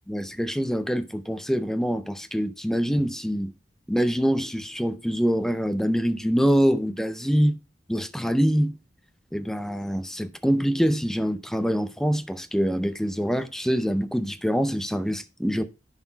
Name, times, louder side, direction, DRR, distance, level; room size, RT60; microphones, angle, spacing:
voice 1, 0.1-3.5 3.9-7.6 7.9-8.8 9.3-15.6, equal, 5° left, 0.6 m, -25 dB
11.0 x 4.2 x 4.5 m
head